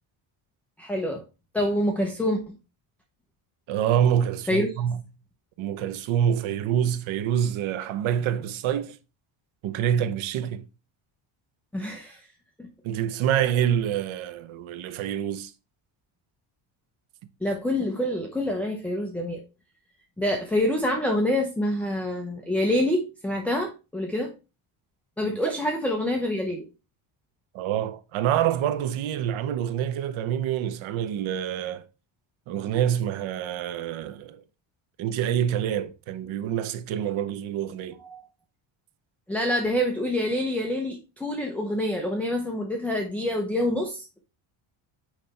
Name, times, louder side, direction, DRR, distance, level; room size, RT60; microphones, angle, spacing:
voice 1, 0.8-1.2 1.5-2.5 4.5-4.7 11.7-12.2 12.6-12.7 17.4-19.4 20.2-24.3 25.2-26.6 38.0-38.2 39.3-44.2, left 1 dB, 5° left, 0.7 m, -26 dB
voice 2, 3.7-5.0 5.6-9.0 9.6-10.7 12.8-15.5 25.2-25.4 27.5-31.8 32.5-34.4 35.0-38.0, right 9 dB, 70° right, 0.9 m, -26 dB
9.0 x 3.4 x 4.0 m
cardioid pair, 155°, 50 cm